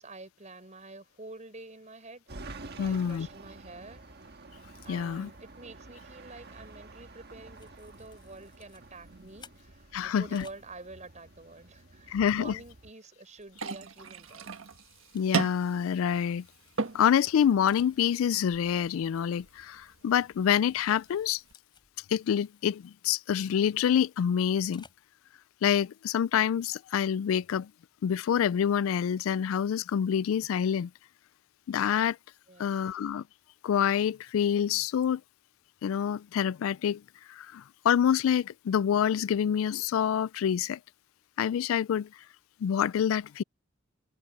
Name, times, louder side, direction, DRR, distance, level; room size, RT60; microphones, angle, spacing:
voice 1, 0.0-2.3 2.8-4.1 4.8-14.5 32.5-32.9, right 2 dB, 35° right, 6.0 m, -48 dB
sound 1, 2.3-12.9, right 3 dB, 55° right, 1.5 m, -49 dB
voice 2, 2.8-3.3 4.9-5.3 9.9-10.4 12.1-12.6 15.1-16.4 16.9-21.4 22.1-24.8 25.6-27.7 28.0-30.9 31.7-32.2 32.6-33.2 33.6-35.2 35.8-37.0 37.3-40.8 41.4-42.1 42.6-43.4, left 8 dB, 80° left, 0.3 m, -27 dB
sound 2, 7.5-10.6 12.3-12.5 13.0-16.8 17.0-17.1 17.3-17.4 17.7-18.0 19.6-19.7 20.4-23.3 24.5-25.1, left 5 dB, 20° left, 5.8 m, -60 dB
sound 3, 13.5-21.5, right 4 dB, 75° right, 1.4 m, -38 dB
head